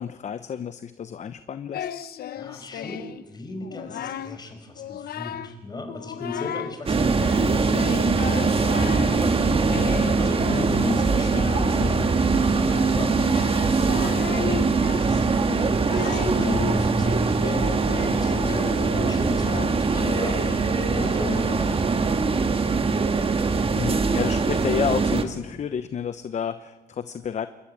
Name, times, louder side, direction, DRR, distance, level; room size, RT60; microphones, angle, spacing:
voice 1, 0.0-1.9 23.7-27.5, left 7 dB, 45° left, 12 dB, 0.9 m, -30 dB
Singing, 1.7-3.2 3.6-4.4 4.8-5.6 5.9-6.8 7.2-21.7, left 10 dB, 70° left, 1.0 m, -35 dB
voice 2, 2.4-15.2 15.9-20.6 20.9-21.8, left 2 dB, 25° left, 5 dB, 5.4 m, -36 dB
sound 1, 6.9-25.2, right 4 dB, 35° right, 1.8 m, -22 dB
28.0 x 13.5 x 9.7 m, 1.2 s
cardioid pair, 115°, 17 cm